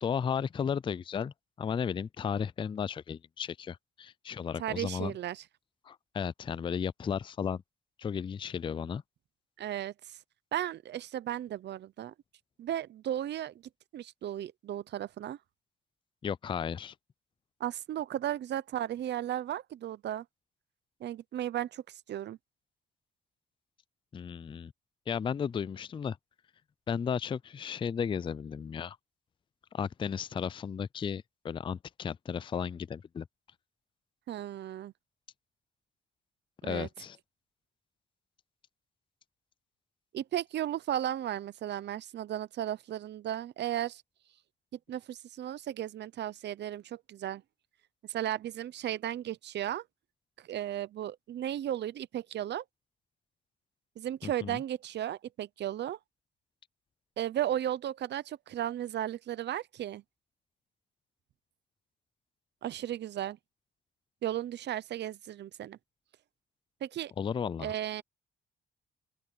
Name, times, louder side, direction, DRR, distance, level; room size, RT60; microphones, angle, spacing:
voice 1, 0.0-5.1 5.9-7.6 8.0-9.0 16.2-16.9 24.1-24.7 25.1-26.2 26.9-29.0 29.7-33.3 36.6-37.2 54.2-54.6 67.2-67.7, left 7 dB, 25° left, 0.3 m, -34 dB
voice 2, 4.6-5.4 9.6-10.2 10.5-12.1 12.6-13.6 13.9-15.4 17.6-20.2 21.0-22.4 34.3-34.9 36.6-36.9 40.1-44.0 44.9-47.4 48.0-49.9 50.4-52.6 54.0-56.0 57.2-60.0 62.6-63.4 64.2-65.8 66.8-67.1 67.6-68.0, right 11 dB, 60° right, 0.7 m, -35 dB
open air
cardioid pair, 90°, 20 cm